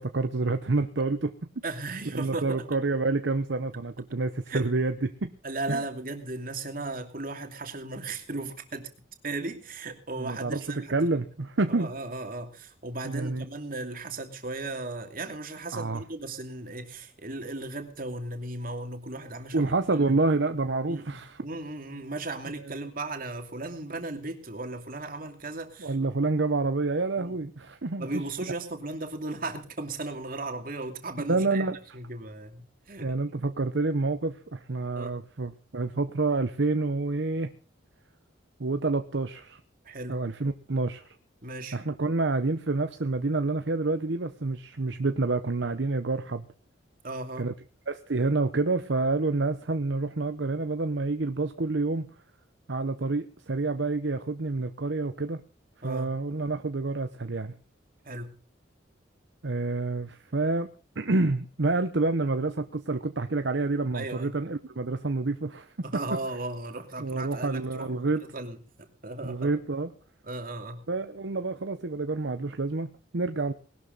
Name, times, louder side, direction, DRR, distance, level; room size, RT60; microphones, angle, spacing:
voice 1, 0.0-1.3 2.1-5.3 5.7-5.8 10.2-11.9 13.0-13.4 15.7-16.0 19.5-21.4 22.6-22.7 25.8-28.2 31.2-31.8 33.0-37.5 38.6-39.6 40.1-41.1 41.7-46.4 47.4-47.5 47.9-52.1 52.7-55.4 55.8-57.5 59.4-60.7 61.0-66.0 67.0-68.2 69.2-69.9 70.9-73.5, right 3 dB, 70° right, 8 dB, 0.9 m, -28 dB
voice 2, 1.6-2.7 4.5-4.7 5.4-8.9 9.2-11.1 11.7-19.7 20.0-20.2 20.8-26.0 27.2-27.4 28.0-33.1 35.0-35.2 39.8-40.2 41.4-41.8 47.0-47.5 55.8-56.1 58.0-58.3 63.9-64.4 65.8-68.6 69.0-69.5 70.2-70.9, right 2 dB, 50° right, 5 dB, 2.7 m, -36 dB
20.0 x 12.5 x 4.0 m, 0.37 s
head